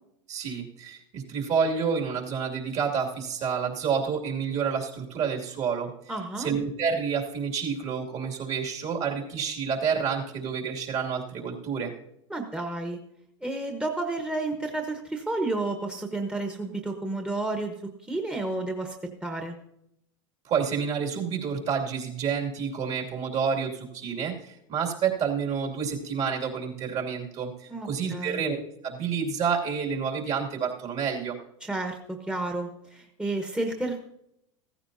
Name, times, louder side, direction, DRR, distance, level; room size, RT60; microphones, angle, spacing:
voice 1, 0.3-5.9 6.4-11.9 20.4-28.6 28.8-31.4, right 6 dB, 45° right, 1 dB, 2.6 m, -29 dB
voice 2, 6.1-6.5 12.3-13.0 13.4-19.0 19.2-19.5 27.7-28.4 31.6-34.0, right 2 dB, 5° right, 3 dB, 1.3 m, -31 dB
15.0 x 14.5 x 2.8 m, 0.79 s
hypercardioid pair, 95°, 16 cm